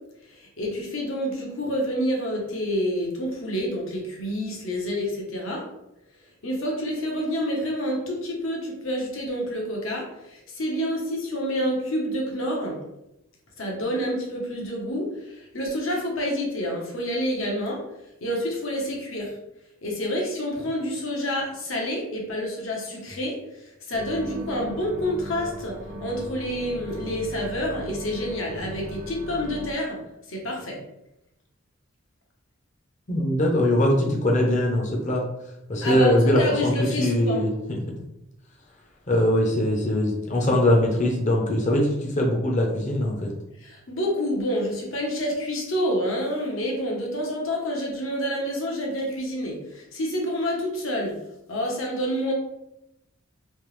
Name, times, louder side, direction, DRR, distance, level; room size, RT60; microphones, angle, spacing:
voice 1, 0.3-5.6 6.4-12.8 13.6-17.8 18.2-19.3 19.8-30.0 30.3-30.8 35.8-37.4 43.6-51.1 51.5-52.3, equal, 75° left, -1 dB, 1.0 m, -28 dB
sound 1, 23.9-29.7, equal, 40° right, 0.7 m, -38 dB
voice 2, 33.1-35.2 35.7-37.8 39.1-43.3, left 1 dB, 35° left, -1 dB, 0.7 m, -22 dB
3.3 x 2.8 x 3.2 m, 0.88 s
head